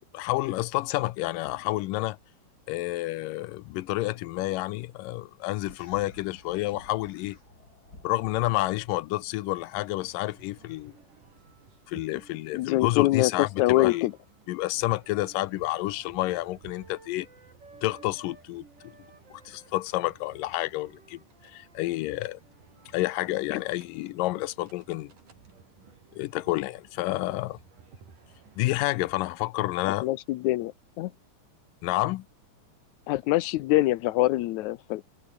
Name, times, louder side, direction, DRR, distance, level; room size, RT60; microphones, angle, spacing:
voice 1, 0.1-2.2 2.7-7.4 8.0-10.9 11.9-14.1 14.5-17.3 17.8-18.6 19.3-22.4 22.9-25.1 26.2-27.6 28.6-30.1 31.8-32.3, left 18 dB, 90° left, 2.4 m, -29 dB
sound 1, 5.6-9.1, left 2 dB, 25° left, 5.9 m, -52 dB
sound 2, 9.3-29.1, right 5 dB, 70° right, 5.9 m, -56 dB
voice 2, 12.5-14.1 23.5-23.6 30.0-30.7 31.0-31.1 33.1-35.0, left 17 dB, 75° left, 1.9 m, -24 dB
sound 3, 14.6-18.5 18.8-23.1, right 3 dB, 30° right, 6.0 m, -57 dB
omnidirectional pair, 3.8 m